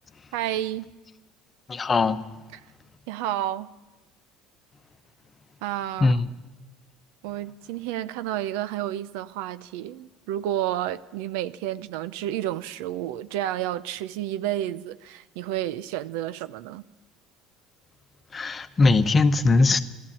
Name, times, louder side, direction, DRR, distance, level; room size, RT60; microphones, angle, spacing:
voice 1, 0.3-0.9 3.1-3.7 5.6-6.2 7.2-16.8, right 12 dB, 80° right, 0.5 m, -30 dB
voice 2, 1.7-2.2 6.0-6.3 18.3-19.8, left 3 dB, 30° left, 0.9 m, -20 dB
13.5 x 12.5 x 8.6 m
supercardioid pair, 95°, 0 cm